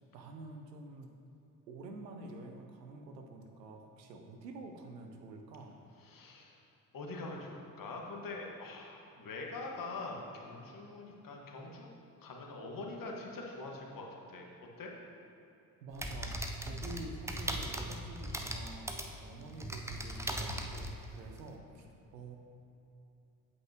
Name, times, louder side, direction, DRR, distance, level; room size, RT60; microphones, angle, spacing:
voice 1, 0.1-1.2 1.7-5.8 15.8-21.9 22.1-22.4, right 2 dB, 90° right, 4 dB, 0.7 m, -48 dB
voice 2, 6.0-6.6 6.9-11.9 12.2-14.5 14.8-14.9 17.0-17.1 19.4-19.5 21.8-21.9, left 3 dB, 45° left, 0 dB, 1.5 m, -44 dB
sound 1, 15.9-21.5, right 1 dB, 5° right, 0.6 m, -39 dB
8.3 x 7.9 x 2.9 m, 2.8 s
hypercardioid pair, 50°, 48 cm